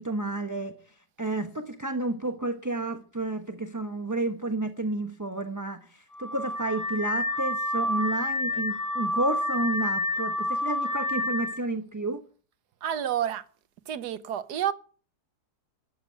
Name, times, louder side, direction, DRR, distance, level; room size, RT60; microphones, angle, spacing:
voice 1, 0.0-12.2, right 2 dB, 15° right, 0.9 m, -31 dB
Car / Alarm, 6.1-11.6, left 1 dB, 20° left, 0.5 m, -29 dB
voice 2, 12.8-13.5 13.9-14.7, right 10 dB, 85° right, 1.5 m, -29 dB
13.5 x 9.1 x 9.2 m
omnidirectional pair, 1.7 m